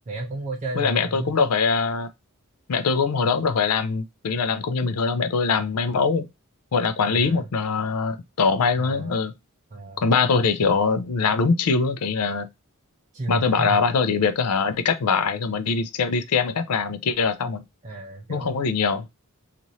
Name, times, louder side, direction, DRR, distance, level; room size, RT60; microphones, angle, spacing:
voice 1, 0.0-1.3 7.0-7.5 8.8-9.1 9.7-10.0 13.1-13.8 17.8-18.6, right 2 dB, 35° right, 0.5 m, -33 dB
voice 2, 0.7-2.1 2.7-6.3 6.7-9.3 10.0-12.5 13.3-17.6 18.3-19.1, left 5 dB, 85° left, 0.5 m, -22 dB
3.0 x 2.5 x 3.9 m
head